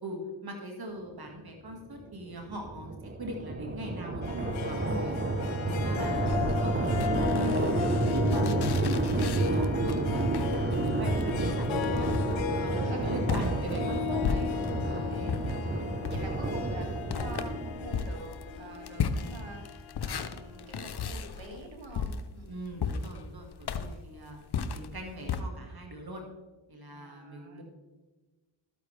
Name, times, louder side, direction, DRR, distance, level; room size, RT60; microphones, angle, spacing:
voice 1, 0.0-2.9 3.2-5.2 5.6-6.3 6.6-7.7 8.1-14.5 15.1-15.3 22.4-24.4 24.7-26.2 26.7-27.6, right 1 dB, 55° right, 2 dB, 2.0 m, -40 dB
sound 1, 1.8-18.1, right 2 dB, 25° right, 1.0 m, -30 dB
Harp, 4.2-21.0, left 9 dB, 90° left, 0.9 m, -36 dB
voice 2, 5.6-6.3 12.5-13.2 14.8-15.8 16.0-22.5 23.5-24.0 26.9-27.6, right 2 dB, 75° right, 2 dB, 2.3 m, -47 dB
sound 2, 6.1-14.9 15.3-25.4, left 6 dB, 60° left, 0.8 m, -36 dB
12.5 x 8.5 x 3.4 m, 1.2 s
cardioid pair, 45°, 45 cm